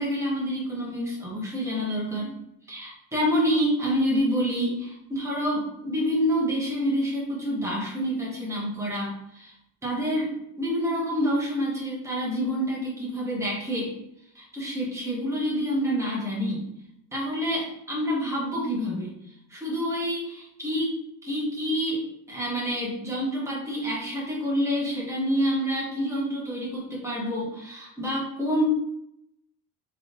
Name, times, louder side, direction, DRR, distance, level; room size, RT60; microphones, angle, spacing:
voice 1, 0.0-2.3 2.7-9.5 9.8-10.3 10.6-13.9 14.3-16.6 17.1-19.1 19.5-21.0 21.2-22.0 22.3-28.7, equal, 5° right, -5 dB, 1.2 m, -27 dB
3.6 x 3.3 x 3.9 m, 0.78 s
cardioid pair, 160°, 39 cm